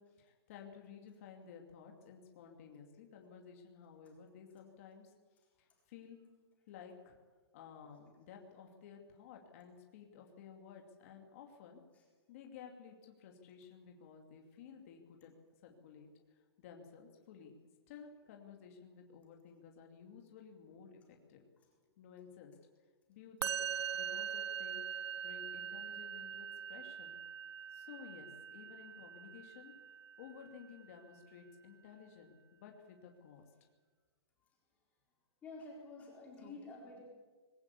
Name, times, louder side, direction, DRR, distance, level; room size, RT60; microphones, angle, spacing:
voice 1, 0.0-5.1 5.6-6.2 6.7-7.2 7.5-11.8 12.3-15.3 15.6-17.5 17.9-21.4 22.0-22.5 23.1-27.2 27.7-29.7 30.2-33.5 36.4-36.6, left 7 dB, 30° left, 2 dB, 2.6 m, -55 dB
Musical instrument, 23.4-30.7, right 7 dB, 75° right, 0.7 m, -42 dB
voice 2, 35.4-37.0, left 2 dB, 10° left, -2 dB, 4.2 m, -50 dB
21.0 x 17.5 x 8.5 m, 1.4 s
hypercardioid pair, 170°, 14 cm